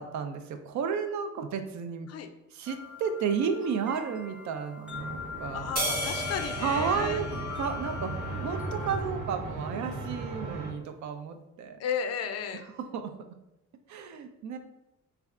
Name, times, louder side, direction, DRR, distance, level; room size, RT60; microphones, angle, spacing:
voice 1, 0.0-2.1 2.5-5.7 6.6-7.3 7.6-11.8 12.9-13.1 13.9-14.6, right 6 dB, 70° right, 7 dB, 0.5 m, -32 dB
sound 1, 2.6-9.0, left 6 dB, 5° right, 0.5 m, -42 dB
sound 2, 4.9-10.7, right 2 dB, 90° right, 0.8 m, -37 dB
voice 2, 5.5-7.3 11.8-12.6, left 7 dB, 55° left, 7 dB, 0.4 m, -34 dB
sound 3, 5.8-8.4, equal, 30° right, 0.9 m, -34 dB
3.3 x 2.3 x 3.5 m, 0.90 s
cardioid pair, 90°, 30 cm